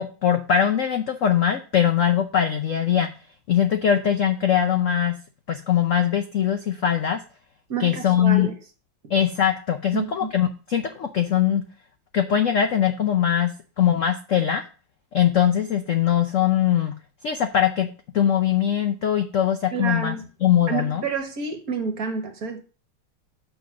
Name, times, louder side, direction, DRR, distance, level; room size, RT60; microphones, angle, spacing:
voice 1, 0.0-3.1 3.5-5.2 5.5-7.2 7.8-8.5 9.1-11.6 12.1-13.5 13.8-14.6 15.1-16.9 17.2-17.9 18.1-20.2 20.4-21.0, left 9 dB, 75° left, 0.7 m, -21 dB
voice 2, 7.7-8.5 9.0-9.1 9.9-10.3 19.7-20.3 20.7-22.6, right 5 dB, 50° right, 1.5 m, -29 dB
6.4 x 5.7 x 6.2 m
omnidirectional pair, 2.3 m